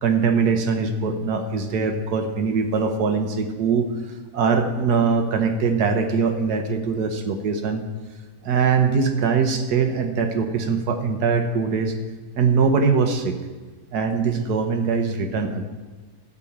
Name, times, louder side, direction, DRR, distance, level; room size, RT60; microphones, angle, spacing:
voice 1, 0.0-7.8 8.4-12.0 12.4-13.4 13.9-15.7, right 5 dB, 75° right, 6 dB, 1.6 m, -22 dB
12.5 x 5.3 x 8.6 m, 1.3 s
omnidirectional pair, 1.7 m